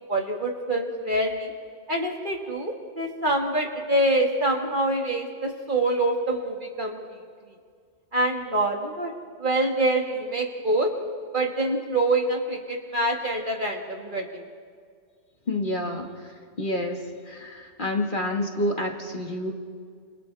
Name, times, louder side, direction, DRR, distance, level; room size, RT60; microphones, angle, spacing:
voice 1, 0.1-1.5 1.9-7.0 8.1-9.1 9.4-10.9 11.3-14.4, right 1 dB, 40° right, 1 dB, 2.2 m, -25 dB
voice 2, 15.5-16.1 16.6-17.0 17.3-19.5, left 1 dB, 40° left, 1 dB, 2.1 m, -28 dB
29.5 x 28.0 x 3.5 m, 2.1 s
omnidirectional pair, 1.3 m